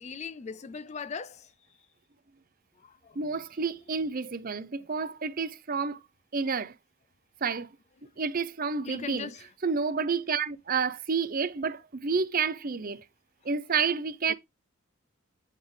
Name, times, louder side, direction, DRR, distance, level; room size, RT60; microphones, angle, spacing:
voice 1, 0.0-1.5 2.8-3.2 8.8-9.5 14.3-14.4, left 5 dB, 30° left, 0.4 m, -39 dB
voice 2, 3.2-6.0 6.3-6.7 7.4-7.7 8.2-9.3 9.6-13.0 13.4-14.3, right 5 dB, 40° right, 0.6 m, -29 dB
8.9 x 3.6 x 3.3 m
head